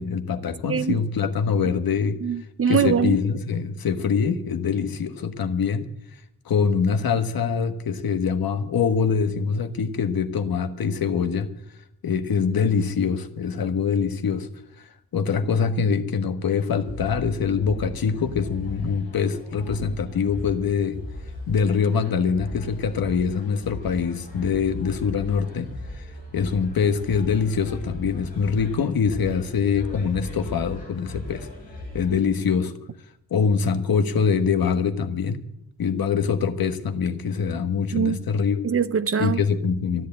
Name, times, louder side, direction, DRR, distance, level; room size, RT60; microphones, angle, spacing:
voice 1, 0.0-2.2 2.7-5.9 6.4-11.5 12.0-14.5 14.8-20.9 21.5-25.7 25.9-26.1 26.3-31.5 31.9-32.7 33.3-35.4 35.8-38.6 39.2-40.1, left 6 dB, 65° left, 1.4 m, -24 dB
voice 2, 0.7-1.0 2.2-3.2 37.9-38.2 38.6-39.4, right 7 dB, 35° right, 0.6 m, -23 dB
sound 1, 16.7-32.2, left 1 dB, 20° left, 6.8 m, -38 dB
13.5 x 11.0 x 8.6 m
wide cardioid pair, 160°, 38 cm